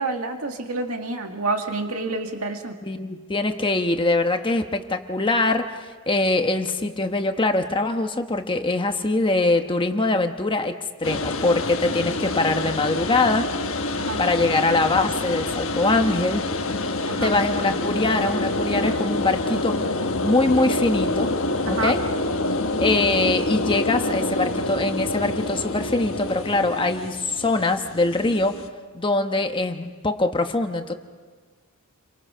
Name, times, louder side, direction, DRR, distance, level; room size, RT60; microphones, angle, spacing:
voice 1, 0.0-2.8 14.0-14.2 17.1-17.3 21.7-21.9, right 3 dB, 75° right, 4 dB, 2.0 m, -28 dB
voice 2, 2.8-5.7 6.1-10.7 11.0-13.5 14.2-16.4 17.2-19.7 20.2-21.3 21.7-22.0 22.8-28.6 28.9-30.9, left 2 dB, 20° left, 6 dB, 1.1 m, -23 dB
sound 1, 11.0-28.7, left 2 dB, 65° left, 1.3 m, -27 dB
30.0 x 24.0 x 5.6 m, 1.5 s
head